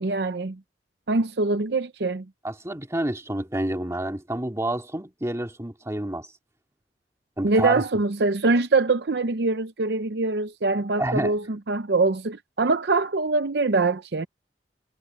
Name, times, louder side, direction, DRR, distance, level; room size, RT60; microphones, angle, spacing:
voice 1, 0.0-0.6 1.1-2.2 7.4-14.3, right 3 dB, 65° right, 0.7 m, -23 dB
voice 2, 2.4-6.3 7.4-7.8 11.0-11.4, right 1 dB, 15° right, 2.4 m, -28 dB
head